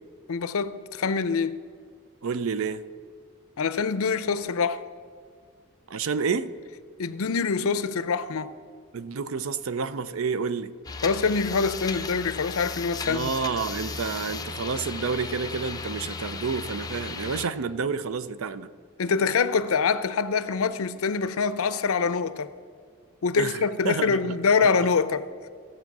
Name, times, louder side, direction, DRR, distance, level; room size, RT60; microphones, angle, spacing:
voice 1, 0.3-1.6 3.6-4.9 7.0-8.5 11.0-13.3 19.0-22.5 23.2-25.3, left 5 dB, 80° left, 0.6 m, -25 dB
voice 2, 2.2-2.8 5.9-6.5 8.9-10.7 13.1-18.7 23.4-24.2, right 5 dB, 75° right, 0.5 m, -29 dB
sound 1, 10.8-17.5, left 4 dB, 15° left, 0.5 m, -35 dB
15.5 x 7.6 x 6.0 m
head